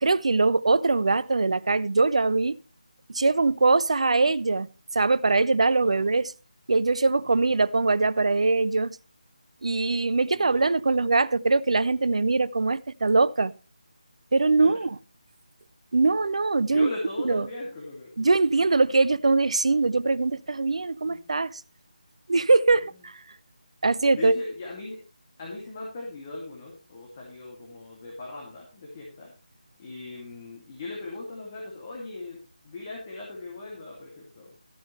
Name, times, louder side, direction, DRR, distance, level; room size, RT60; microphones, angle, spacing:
voice 1, 0.0-2.6 3.1-6.3 6.7-9.0 9.6-13.5 14.3-15.0 15.9-16.9 17.2-17.5 18.2-21.6 22.3-23.2 23.8-24.4, right 3 dB, 50° right, 0.5 m, -22 dB
voice 2, 5.8-6.1 7.2-7.4 10.3-10.8 14.6-14.7 16.7-18.1 21.0-21.3 24.1-25.0 25.4-29.3 29.8-32.4 32.6-34.5, left 2 dB, 25° left, 2.4 m, -39 dB
13.0 x 9.4 x 3.2 m
figure-of-eight pair, 155°, 4 cm